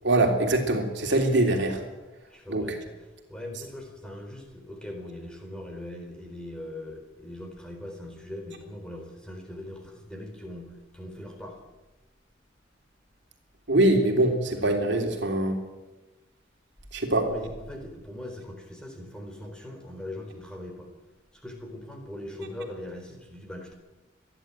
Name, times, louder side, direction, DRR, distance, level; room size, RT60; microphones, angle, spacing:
voice 1, 0.0-1.8 2.5-2.8 13.7-15.6 16.9-17.3, right 1 dB, 65° right, 3 dB, 3.3 m, -23 dB
voice 2, 2.3-2.8 3.3-11.6 14.6-14.8 17.2-20.9 21.3-23.7, left 1 dB, 5° left, 2 dB, 4.1 m, -40 dB
27.0 x 11.0 x 9.1 m, 1.1 s
head